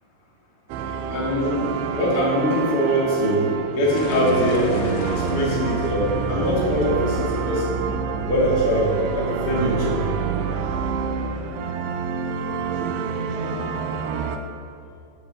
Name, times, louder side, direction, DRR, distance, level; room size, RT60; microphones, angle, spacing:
sound 1, 0.7-14.4, right 5 dB, 90° right, 2.2 m, -27 dB
voice 1, 1.1-1.7 1.9-3.4 3.7-7.7 8.3-10.0, equal, 35° left, -6 dB, 1.7 m, -22 dB
sound 2, 4.0-8.7, left 4 dB, 75° left, 2.4 m, -36 dB
9.7 x 7.3 x 6.4 m, 2.5 s
omnidirectional pair, 5.3 m